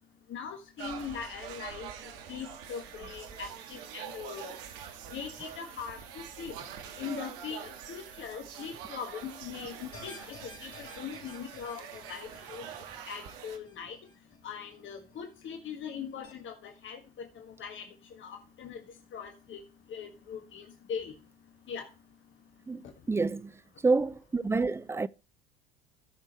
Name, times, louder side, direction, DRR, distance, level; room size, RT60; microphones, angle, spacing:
voice 1, 0.3-1.9 2.3-4.5 5.1-6.5 7.0-12.6 13.0-14.0 14.4-17.8 18.2-18.8 19.1-19.6 19.9-21.1 21.7-21.9, left 7 dB, 40° left, 1.6 m, -41 dB
sound 1, 0.8-13.6, right 8 dB, 65° right, 1.5 m, -45 dB
sound 2, 9.9-15.2 15.5-15.6 16.2-16.3, left 2 dB, 15° left, 4.5 m, -53 dB
voice 2, 22.7-23.5 23.8-25.1, right 3 dB, 10° right, 0.4 m, -28 dB
16.0 x 6.2 x 3.0 m
hypercardioid pair, 70°, 29 cm